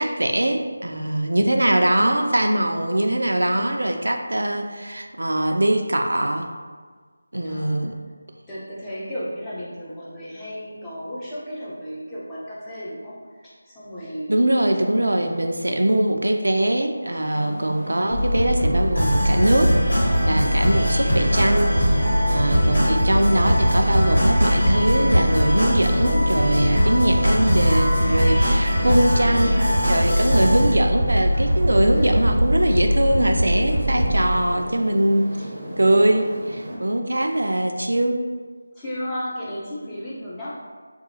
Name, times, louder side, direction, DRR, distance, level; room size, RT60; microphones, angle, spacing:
voice 1, 0.0-6.5 7.3-8.0 14.3-21.8 22.3-29.5 29.8-35.3 35.8-38.2, right 1 dB, 80° right, 4 dB, 0.3 m, -22 dB
voice 2, 7.4-7.8 8.5-14.4 14.8-15.9 17.1-17.2 18.7-18.9 20.1-20.5 28.8-29.1 29.5-29.8 31.9-32.2 35.3-35.5 38.8-40.5, equal, 10° left, -9 dB, 0.5 m, -35 dB
sound 1, 17.3-36.8, equal, 35° right, 0.6 m, -35 dB
Building Tension - Kik Drum, 18.1-34.4, equal, 70° left, 1.4 m, -22 dB
sound 2, 18.9-30.7, equal, 90° left, 1.4 m, -24 dB
2.7 x 2.3 x 2.7 m, 1.5 s
figure-of-eight pair, 165°, 0 cm